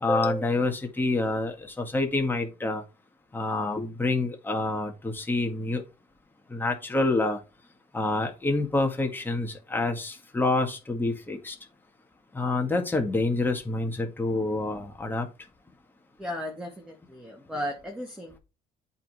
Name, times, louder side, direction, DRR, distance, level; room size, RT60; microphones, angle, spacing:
voice 1, 0.0-2.8 3.3-5.8 6.5-7.4 7.9-11.6 12.3-15.3, left 2 dB, 10° left, 3 dB, 1.9 m, -27 dB
voice 2, 16.2-18.4, equal, 5° right, 1 dB, 1.9 m, -35 dB
8.3 x 3.9 x 4.9 m, 0.28 s
cardioid pair, 110°, 17 cm